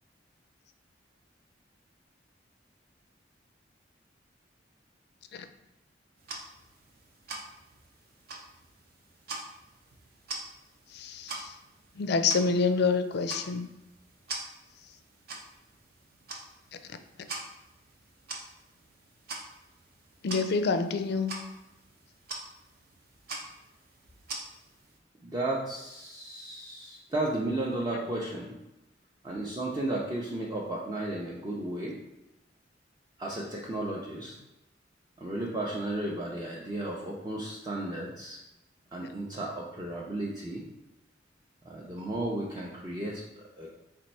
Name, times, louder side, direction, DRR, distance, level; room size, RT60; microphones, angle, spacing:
sound 1, 6.2-25.0, right 3 dB, 55° right, 0.7 m, -44 dB
voice 1, 10.9-11.6 11.9-13.7 20.2-21.3, left 4 dB, 60° left, 9 dB, 0.4 m, -27 dB
voice 2, 25.2-28.6 29.2-32.0 33.2-34.3 35.2-38.4 38.9-40.6 41.6-43.7, right 1 dB, 20° right, -4 dB, 0.5 m, -34 dB
4.3 x 2.5 x 4.2 m, 0.93 s
head